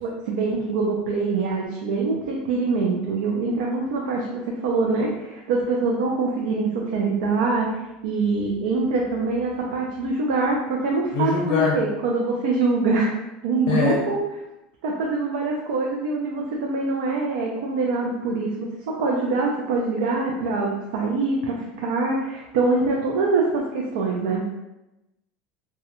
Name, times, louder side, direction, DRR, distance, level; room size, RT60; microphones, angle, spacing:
voice 1, 0.0-13.1 13.4-14.2 14.8-18.7 19.0-24.4, right 3 dB, 85° right, -1 dB, 0.4 m, -24 dB
voice 2, 11.1-11.8 13.7-14.0, left 4 dB, 70° left, -3 dB, 0.6 m, -22 dB
2.2 x 2.1 x 2.9 m, 0.94 s
supercardioid pair, 120°, 5 cm